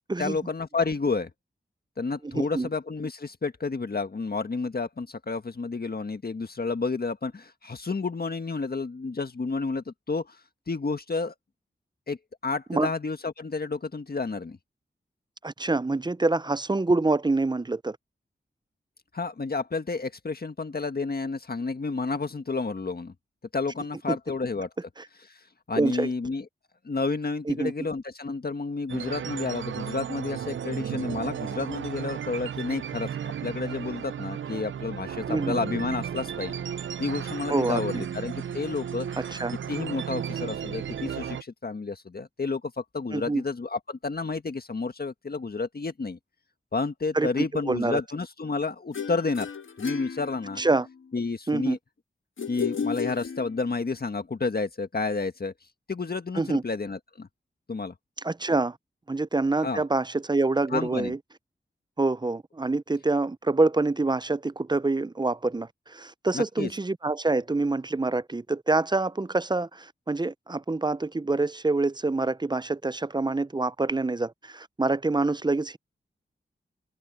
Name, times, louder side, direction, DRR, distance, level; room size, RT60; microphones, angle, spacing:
voice 1, 0.2-1.3 2.0-10.4 10.7-11.3 12.1-12.2 12.4-14.6 19.1-23.1 23.5-24.7 25.3-26.4 26.8-33.1 33.4-36.6 37.0-39.1 39.7-46.2 46.7-49.5 49.8-50.6 51.1-51.8 52.5-55.5 55.9-57.3 57.7-57.9 59.6-59.8 60.7-61.1 66.3-66.7, left 4 dB, 50° left, 1.6 m, -30 dB
voice 2, 2.3-2.7 12.7-12.9 15.4-18.0 24.1-24.2 25.7-26.1 27.5-27.7 35.3-35.6 37.5-38.0 39.3-39.5 43.1-43.4 47.1-47.3 47.7-48.0 50.6-50.9 51.5-51.8 56.4-56.6 58.2-58.8 59.1-61.2 62.0-75.8, right 3 dB, 20° right, 0.6 m, -26 dB
sound 1, 28.9-41.4, right 8 dB, 75° right, 0.5 m, -34 dB
sound 2, 48.9-50.9 52.4-53.9, left 6 dB, 85° left, 1.6 m, -34 dB
open air
cardioid pair, 45°, 20 cm